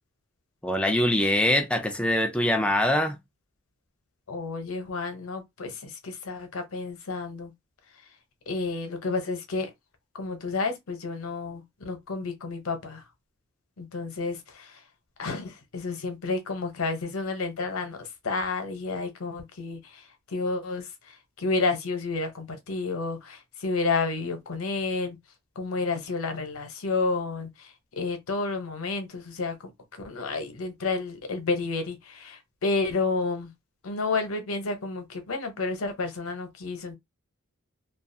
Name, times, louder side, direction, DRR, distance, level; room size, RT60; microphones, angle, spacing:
voice 1, 0.6-3.2, left 1 dB, 5° left, 0.3 m, -23 dB
voice 2, 4.3-7.5 8.5-9.7 10.1-13.0 13.8-14.8 15.2-20.0 20.3-25.2 25.6-29.6 30.0-33.5 33.8-37.0, left 3 dB, 80° left, 0.7 m, -30 dB
2.3 x 2.3 x 2.6 m
head